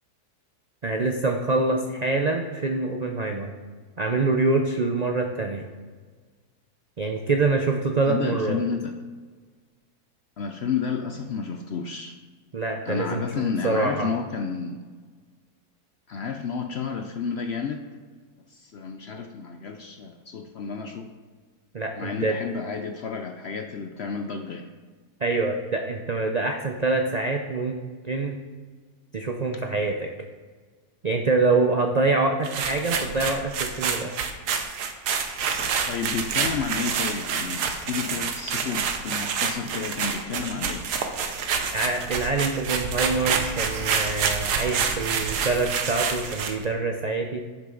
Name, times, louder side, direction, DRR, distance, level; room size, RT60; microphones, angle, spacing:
voice 1, 0.8-3.5 4.0-5.6 7.0-8.6 12.5-14.1 21.7-22.4 25.2-27.8 28.0-28.4 29.1-30.1 31.0-34.1 41.7-47.5, right 3 dB, 70° right, 3 dB, 0.4 m, -25 dB
voice 2, 8.0-8.9 10.4-12.2 12.8-14.8 16.1-17.8 18.5-21.1 22.0-24.7 35.9-40.9, left 5 dB, 65° left, 5 dB, 0.6 m, -31 dB
sound 1, 32.4-46.6, right 6 dB, 85° right, 1.4 m, -28 dB
11.5 x 6.7 x 3.8 m, 1.5 s
omnidirectional pair, 1.7 m